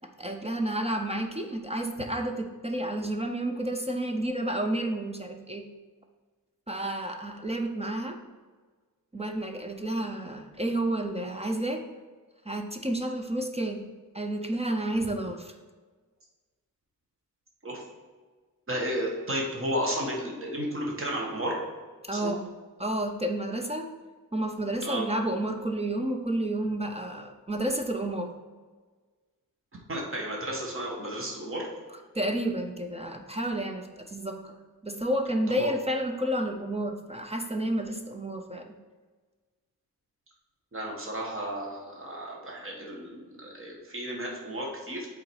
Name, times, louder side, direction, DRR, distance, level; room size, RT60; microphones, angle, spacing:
voice 1, 0.2-5.7 6.7-8.2 9.1-11.8 12.4-13.8 14.1-15.5 22.0-22.5 22.8-23.9 24.3-28.3 32.1-34.6 34.8-38.7, right 1 dB, 20° right, 4 dB, 0.5 m, -30 dB
voice 2, 18.7-21.6 22.1-22.3 24.8-25.0 29.9-31.7 35.6-35.7 40.7-45.1, equal, 35° right, -2 dB, 1.6 m, -33 dB
7.7 x 4.0 x 4.7 m, 1.4 s
wide cardioid pair, 170°, 35 cm